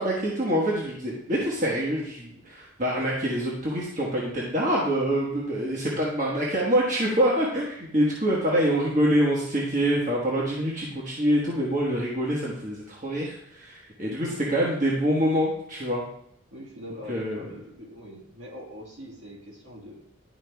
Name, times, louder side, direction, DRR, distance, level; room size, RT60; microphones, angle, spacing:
voice 1, 0.0-16.0 17.1-17.5, equal, 40° right, -4 dB, 1.3 m, -25 dB
voice 2, 14.2-14.5 16.5-20.0, equal, 65° right, -3 dB, 2.4 m, -43 dB
11.0 x 4.9 x 3.4 m, 0.74 s
head